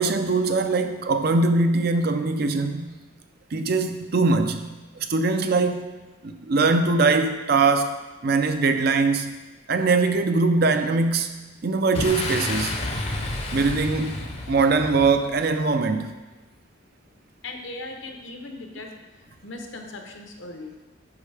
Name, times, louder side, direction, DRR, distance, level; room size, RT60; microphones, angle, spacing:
voice 1, 0.0-2.9 3.5-5.9 6.2-8.0 8.2-9.3 9.7-12.8 13.5-14.2 14.5-16.1, right 3 dB, 50° right, 8 dB, 0.5 m, -22 dB
Boom, 11.9-15.6, left 2 dB, 30° left, 0.7 m, -30 dB
voice 2, 17.4-18.9 19.4-20.7, left 2 dB, 65° left, 3 dB, 0.9 m, -38 dB
8.3 x 5.6 x 3.4 m, 1.2 s
head